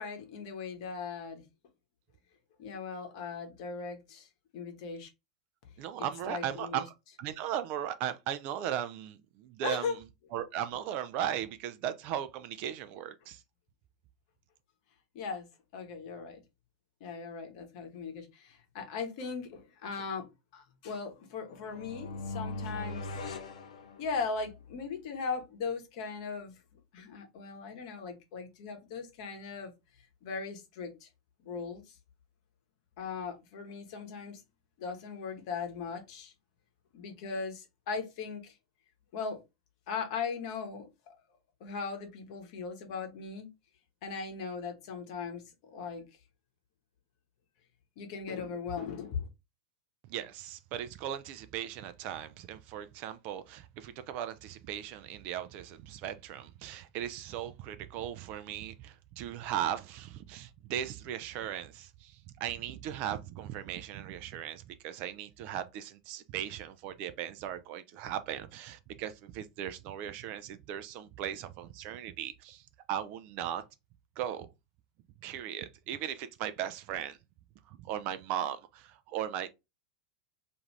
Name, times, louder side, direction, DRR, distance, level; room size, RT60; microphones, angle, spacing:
voice 1, 0.0-1.4 2.6-5.1 6.3-6.8 9.6-10.0 15.1-15.5 15.7-16.4 17.0-20.3 20.5-23.1 24.0-26.6 26.9-29.7 30.2-31.1 31.4-32.0 33.0-34.4 34.8-36.3 36.9-38.5 39.1-39.4 39.9-40.9 41.6-43.5 44.0-45.4 45.7-46.0 48.0-49.3, left 5 dB, 55° left, 0.9 m, -38 dB
voice 2, 5.8-6.9 7.2-10.0 10.3-13.4 50.1-73.6 74.2-74.5 75.2-77.2 77.7-79.5, right 10 dB, 45° right, 0.4 m, -37 dB
sound 1, 21.5-24.5, left 2 dB, 70° left, 0.5 m, -40 dB
2.5 x 2.4 x 3.2 m
figure-of-eight pair, 90°, 4 cm